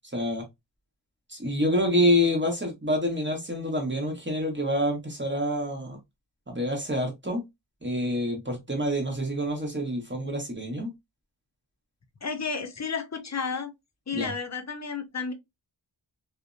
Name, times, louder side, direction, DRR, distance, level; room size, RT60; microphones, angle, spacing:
voice 1, 0.1-0.4 1.3-6.0 6.5-7.4 7.8-10.9 14.1-14.3, equal, 25° right, 1.2 m, -27 dB
voice 2, 12.2-13.7 14.1-15.3, left 5 dB, 40° left, 0.6 m, -32 dB
2.6 x 2.1 x 2.4 m
wide cardioid pair, 65°, 44 cm